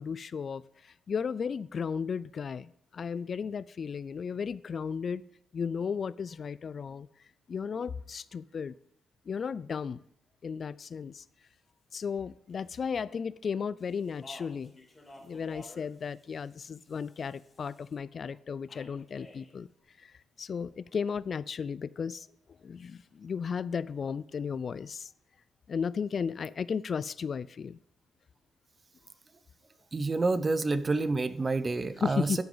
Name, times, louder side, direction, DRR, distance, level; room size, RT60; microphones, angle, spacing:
voice 1, 0.0-5.2 5.5-7.1 7.5-8.7 9.3-10.0 10.4-11.2 11.9-14.7 15.2-19.7 20.0-22.3 22.6-25.1 25.7-27.8 32.0-32.4, left 6 dB, 45° left, 19 dB, 0.3 m, -34 dB
Speech, 13.8-17.9 18.7-19.5, left 1 dB, 20° left, 3.2 m, -53 dB
voice 2, 29.9-32.4, right 3 dB, 30° right, 13 dB, 0.8 m, -28 dB
10.5 x 10.0 x 3.9 m, 0.72 s
cardioid pair, 90°, 0 cm